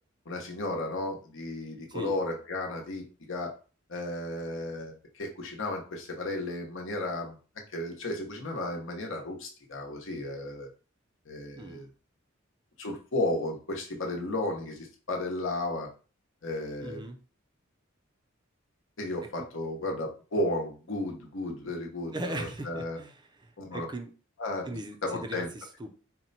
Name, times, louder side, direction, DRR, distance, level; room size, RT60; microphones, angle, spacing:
voice 1, 0.3-3.5 3.9-7.4 7.7-10.7 11.3-11.9 12.8-15.9 16.4-17.0 19.0-23.0 23.6-23.9 24.4-24.6 25.0-25.5, left 1 dB, 70° left, 1 dB, 1.0 m, -34 dB
voice 2, 11.6-11.9 16.8-17.2 19.4-19.5 22.1-24.1 24.7-25.9, right 1 dB, 20° right, 5 dB, 0.5 m, -39 dB
4.3 x 2.2 x 4.0 m, 0.37 s
head